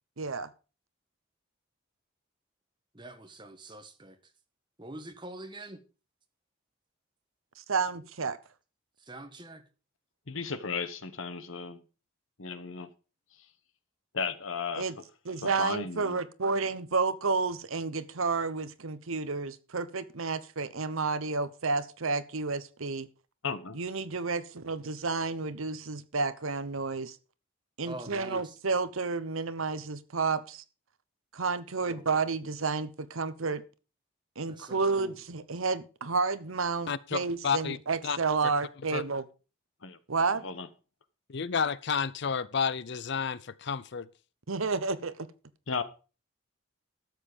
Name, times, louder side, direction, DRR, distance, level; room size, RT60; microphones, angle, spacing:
voice 1, 0.2-0.5 7.6-8.4 14.8-14.9 15.3-23.1 23.7-27.2 27.8-30.6 31.3-33.6 34.4-39.2 40.1-40.4 44.5-45.3, right 4 dB, 75° right, 1.0 m, -31 dB
voice 2, 2.9-4.2 4.8-5.8 9.0-9.6 27.8-28.6 31.9-32.1 34.5-35.2, right 1 dB, 20° right, 1.4 m, -44 dB
voice 3, 10.3-11.8 12.4-12.9 14.1-14.8 15.4-16.2 23.4-23.8 39.8-40.0 40.4-40.7 45.7-45.8, left 5 dB, 70° left, 1.2 m, -35 dB
voice 4, 36.9-37.8 38.0-38.2 38.4-38.5 38.9-39.0 41.3-44.1, left 6 dB, 55° left, 0.5 m, -31 dB
13.0 x 7.5 x 5.1 m
head